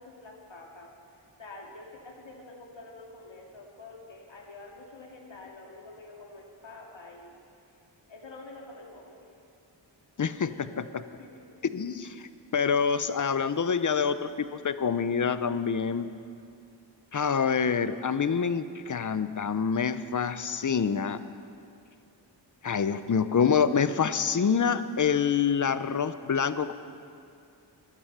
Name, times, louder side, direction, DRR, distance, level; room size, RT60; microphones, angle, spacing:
voice 1, 0.0-7.4 8.1-9.2 11.2-11.5, left 2 dB, 80° left, -1 dB, 2.3 m, -47 dB
voice 2, 10.2-11.0 11.7-12.2 12.5-16.1 17.1-21.2 22.6-26.7, left 6 dB, 45° left, 13 dB, 0.6 m, -26 dB
13.0 x 12.5 x 6.7 m, 2.4 s
wide cardioid pair, 110°, 45 cm